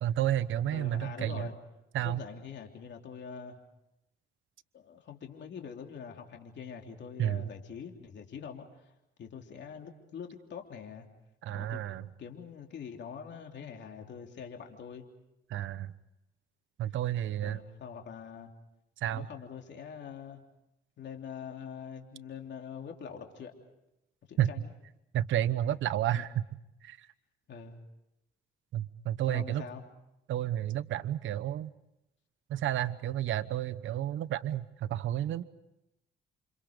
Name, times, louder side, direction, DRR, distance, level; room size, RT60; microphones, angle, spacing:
voice 1, 0.0-1.5 1.9-2.2 7.2-7.4 11.4-12.0 15.5-15.9 16.8-17.6 19.0-19.2 24.4-24.5 25.1-26.3 26.8-27.0 28.7-29.6 30.3-31.7 32.5-35.4, right 12 dB, 75° right, 12 dB, 1.0 m, -31 dB
voice 2, 0.7-1.5 2.0-3.6 4.7-8.9 9.2-11.1 11.5-11.8 12.2-15.1 17.4-18.5 19.1-20.4 21.0-23.5 24.3-24.7 26.1-26.2 27.5-27.8 29.3-29.8, left 7 dB, 65° left, 3 dB, 3.2 m, -44 dB
29.0 x 27.5 x 5.2 m, 0.87 s
cardioid pair, 90°, 20 cm